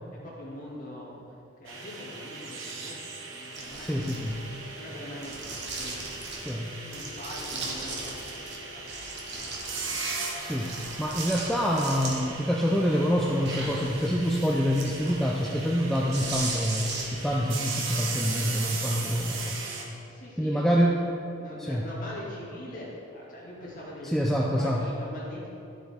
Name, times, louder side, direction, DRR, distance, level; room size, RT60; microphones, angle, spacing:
voice 1, 0.2-6.3 6.5-10.2 20.1-20.9 21.4-25.5, left 1 dB, 40° left, -6 dB, 2.3 m, -43 dB
sound 1, 1.7-19.8, right 4 dB, 70° right, 1.1 m, -38 dB
sound 2, 3.5-4.6 5.2-6.5 6.9-8.6 8.9-12.4 12.8-17.3, right 3 dB, 50° right, 1.4 m, -38 dB
voice 2, 3.8-4.4 6.4-6.7 10.4-19.6 20.4-21.0 21.7-21.9 24.1-24.9, equal, ahead, -3 dB, 0.4 m, -26 dB
11.5 x 7.8 x 3.6 m, 2.7 s
head